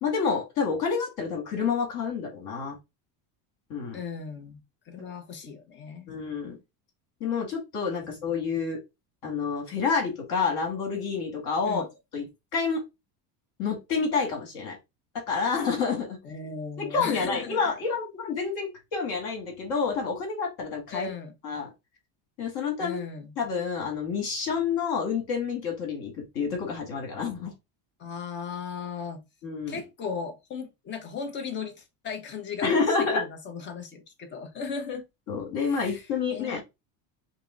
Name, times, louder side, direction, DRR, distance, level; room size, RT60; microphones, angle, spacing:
voice 1, 0.0-2.8 3.7-4.0 6.1-6.6 7.2-8.8 9.2-11.8 12.1-12.3 12.5-12.8 13.6-14.8 15.1-16.2 16.8-21.1 21.4-21.7 22.4-23.0 23.4-27.5 29.4-29.8 32.6-33.2 35.3-36.6, left 5 dB, 50° left, 2.1 m, -28 dB
voice 2, 3.9-6.3 8.0-8.1 11.6-11.9 16.2-17.7 20.9-21.3 22.8-23.3 28.0-29.2 29.7-32.7 33.1-35.0 35.6-36.6, left 5 dB, 25° left, 0.7 m, -37 dB
5.3 x 2.1 x 3.8 m
cardioid pair, 170°, 46 cm